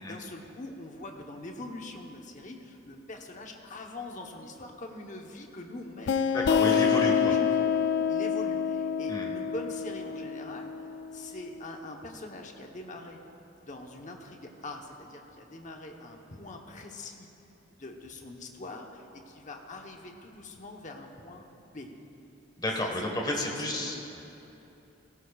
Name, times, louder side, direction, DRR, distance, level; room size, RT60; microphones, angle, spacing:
voice 1, 0.0-6.2 6.6-7.6 8.1-10.7 11.1-13.2 13.6-17.3 17.8-21.9 22.8-22.9 23.2-23.9, left 2 dB, 40° left, 2 dB, 1.0 m, -43 dB
sound 1, 6.1-11.4, left 7 dB, 60° left, 0.3 m, -27 dB
voice 2, 6.3-7.3 9.1-9.3 22.6-24.2, left 1 dB, 20° left, 0 dB, 1.5 m, -31 dB
17.0 x 17.0 x 2.4 m, 3.0 s
head